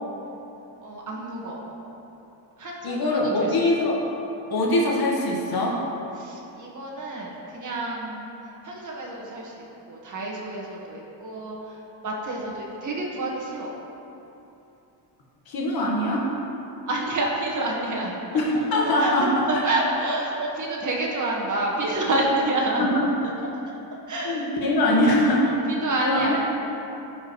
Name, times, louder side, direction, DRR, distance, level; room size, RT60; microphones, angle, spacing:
voice 1, 0.8-1.7 2.6-3.5 6.2-8.3 8.6-11.8 12.0-13.7 16.9-18.1 19.0-22.8 24.1-25.0 25.4-26.4, right 2 dB, 45° right, -3 dB, 1.7 m, -28 dB
voice 2, 2.8-4.0 4.5-5.8 15.5-16.3 18.3-19.6 22.8-23.1 24.2-25.5 25.8-26.4, left 1 dB, 55° left, -3 dB, 1.7 m, -22 dB
15.5 x 5.3 x 3.2 m, 2.9 s
cardioid pair, 135°, 43 cm